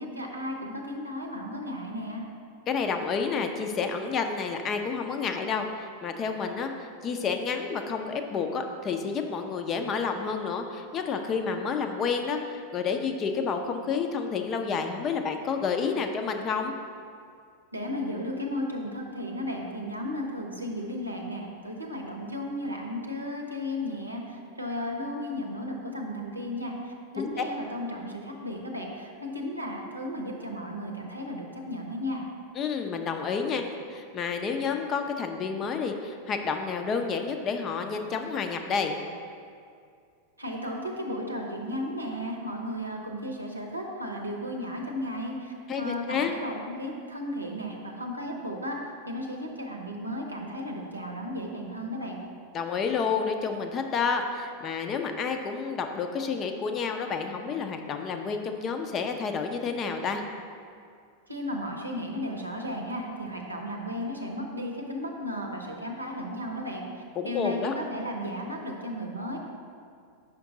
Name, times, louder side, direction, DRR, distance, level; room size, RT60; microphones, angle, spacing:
voice 1, 0.0-2.2 17.7-32.3 40.4-52.2 61.3-69.4, left 1 dB, 85° right, 1 dB, 0.7 m, -34 dB
voice 2, 2.7-6.7 7.0-16.7 27.2-27.3 32.6-39.0 45.7-46.4 52.5-60.2 67.2-67.7, left 5 dB, 30° left, 5 dB, 0.5 m, -30 dB
5.9 x 5.1 x 3.7 m, 2.3 s
figure-of-eight pair, 90°, 0 cm